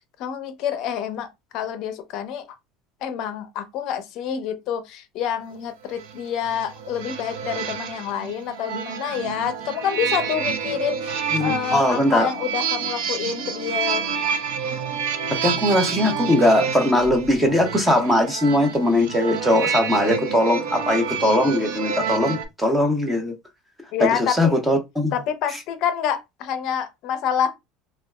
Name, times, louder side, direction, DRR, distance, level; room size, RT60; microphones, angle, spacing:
voice 1, 0.2-1.3 1.5-2.6 3.0-14.1 23.9-24.6 25.1-27.5, left 9 dB, 40° left, 0.5 m, -27 dB
sound 1, 5.9-22.4, right 6 dB, 70° right, 0.5 m, -28 dB
voice 2, 11.3-12.3 15.3-23.3 24.0-25.1, left 1 dB, 5° right, 0.6 m, -20 dB
3.9 x 2.3 x 2.2 m
cardioid pair, 175°, 0 cm